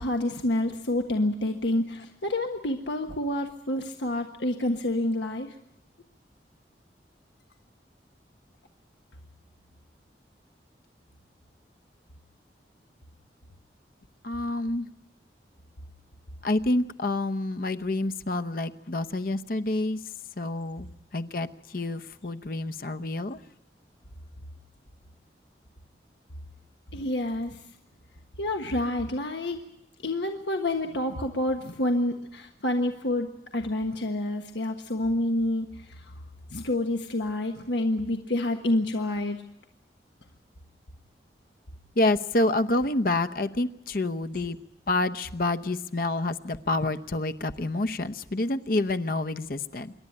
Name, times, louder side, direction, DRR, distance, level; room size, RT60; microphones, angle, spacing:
voice 1, 0.0-5.5 26.9-27.6 28.4-29.6 30.0-36.1 36.5-39.4, left 1 dB, 90° left, 4 dB, 1.4 m, -28 dB
voice 2, 14.2-14.9 16.4-20.0 20.4-20.9 21.1-23.4 42.0-44.6 44.9-49.9, left 2 dB, 55° left, 9 dB, 0.9 m, -28 dB
27.0 x 12.0 x 9.9 m, 0.81 s
head